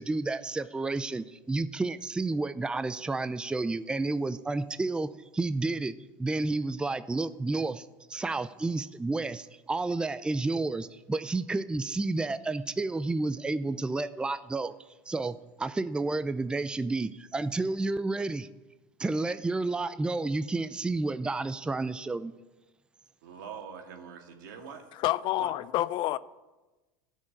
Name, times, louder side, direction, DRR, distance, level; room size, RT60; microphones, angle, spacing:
voice 1, 0.0-5.9 6.2-14.7 15.1-18.5 19.0-22.3, right 3 dB, 10° right, 0.5 m, -31 dB
voice 2, 23.2-24.8 25.4-25.5, right 7 dB, 85° right, 2.1 m, -43 dB
voice 3, 25.0-26.2, left 15 dB, 50° left, 0.5 m, -28 dB
13.5 x 6.5 x 9.0 m
supercardioid pair, 105°, 10 cm